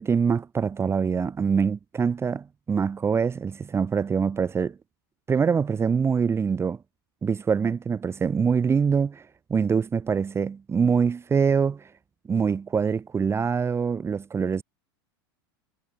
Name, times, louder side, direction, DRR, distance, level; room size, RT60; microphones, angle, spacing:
voice 1, 0.0-4.7 5.3-6.8 7.2-11.9 12.3-14.6, right 6 dB, 20° right, 1.5 m, -24 dB
hypercardioid pair, 110°, 12 cm